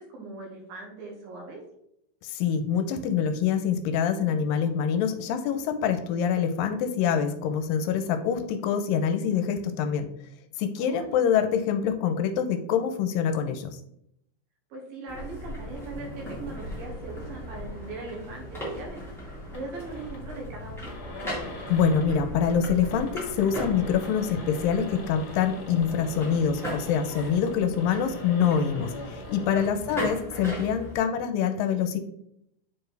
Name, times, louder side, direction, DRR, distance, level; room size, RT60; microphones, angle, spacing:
voice 1, 0.0-1.6 10.8-11.3 14.7-19.0 19.5-20.9 29.5-30.0, right 3 dB, 85° right, -1 dB, 3.4 m, -40 dB
voice 2, 2.2-10.1 10.6-13.8 21.7-32.0, left 7 dB, 80° left, 9 dB, 2.3 m, -25 dB
sound 1, 15.1-31.0, equal, ahead, 0.9 m, -38 dB
sound 2, 19.5-20.2 20.6-20.7 20.9-22.1 22.7-29.6, left 2 dB, 45° left, 2.1 m, -43 dB
7.1 x 4.6 x 3.3 m, 0.75 s
omnidirectional pair, 4.0 m